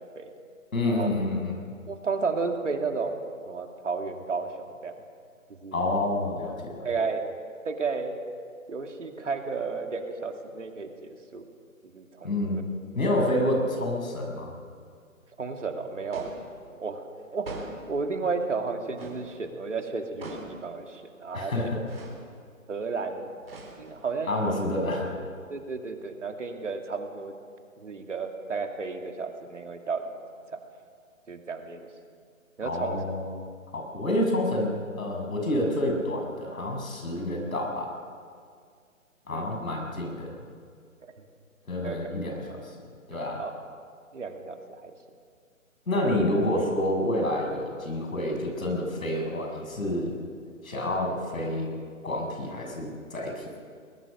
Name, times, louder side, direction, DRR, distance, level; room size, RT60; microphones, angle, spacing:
voice 1, 0.7-1.6 5.7-6.9 12.2-12.6 12.9-14.5 21.3-21.8 24.3-25.1 32.6-33.3 33.7-37.9 39.3-40.4 41.7-42.7 43.1-43.4 45.9-50.1 50.6-51.7 52.0-53.5, left 1 dB, 75° left, 1 dB, 6.7 m, -28 dB
voice 2, 1.9-3.2 3.5-4.5 4.8-5.0 5.6-5.8 6.8-7.3 7.6-8.1 8.7-11.5 11.9-12.6 15.4-16.4 16.8-17.1 17.3-21.5 22.7-23.3 23.8-24.4 25.5-27.3 27.8-30.1 30.5-30.6 31.3-31.9 32.6-33.0 39.3-39.5 41.8-42.1 43.1-43.5 44.1-44.9 46.1-46.2, right 4 dB, 60° right, 4 dB, 2.5 m, -33 dB
sound 1, 16.1-16.5 17.4-17.9 19.0-19.3 20.2-20.6 21.9-22.2 23.4-24.1, right 3 dB, 45° right, 4.2 m, -40 dB
21.0 x 20.5 x 6.7 m, 2.1 s
hypercardioid pair, 175°, 41 cm